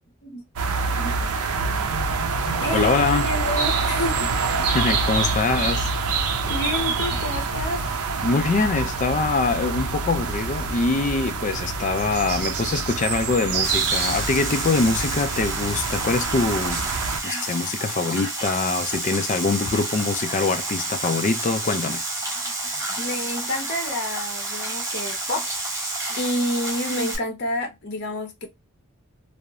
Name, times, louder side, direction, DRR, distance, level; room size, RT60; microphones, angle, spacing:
sound 1, 0.6-17.2, right 4 dB, 75° right, 0.5 m, -26 dB
voice 1, 1.0-2.9 3.2-4.3 6.5-7.8 17.3-17.4 22.4-25.4 25.7-28.5, left 1 dB, 50° left, 0.7 m, -30 dB
voice 2, 2.7-3.3 4.6-5.9 8.2-16.9 17.2-22.0, left 3 dB, 35° left, 0.3 m, -24 dB
sound 2, 13.6-27.2, right 2 dB, 15° right, 0.7 m, -30 dB
2.8 x 2.0 x 2.4 m
head